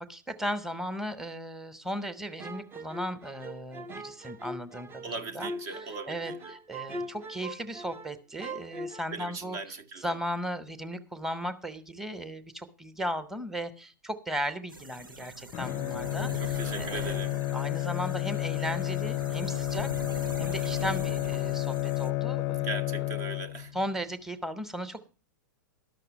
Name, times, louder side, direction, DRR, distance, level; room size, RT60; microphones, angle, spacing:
voice 1, 0.0-9.6 10.0-17.2 17.5-19.9 20.4-22.8 23.7-25.1, equal, 5° right, 1.1 m, -36 dB
sound 1, 2.4-8.1 8.4-9.0, right 1 dB, 20° right, 0.7 m, -40 dB
voice 2, 5.0-6.5 9.1-10.0 16.4-17.4 22.6-23.8, right 3 dB, 45° right, 1.0 m, -39 dB
sound 2, 14.7-22.1, right 2 dB, 85° right, 0.9 m, -42 dB
Bowed string instrument, 15.5-23.9, left 17 dB, 35° left, 0.5 m, -31 dB
12.0 x 6.6 x 7.3 m
figure-of-eight pair, 100°, 11 cm